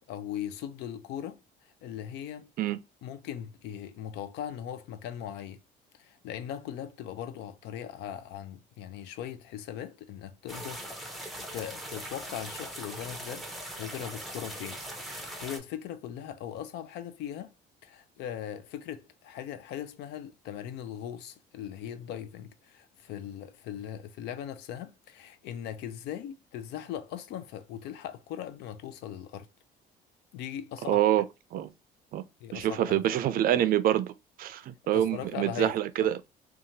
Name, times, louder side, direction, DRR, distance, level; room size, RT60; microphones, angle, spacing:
voice 1, 0.0-2.5 3.0-5.6 5.9-14.8 15.1-17.5 17.8-29.5 30.3-31.1 32.4-33.2 34.9-36.1, left 10 dB, 85° left, 0.4 m, -39 dB
sound 1, 10.5-15.6, right 1 dB, ahead, 0.6 m, -40 dB
voice 2, 30.9-31.2 31.5-31.7 32.1-32.2 32.5-34.1 34.4-36.2, right 12 dB, 60° right, 0.4 m, -26 dB
2.8 x 2.3 x 2.6 m
cardioid pair, 110°, 17 cm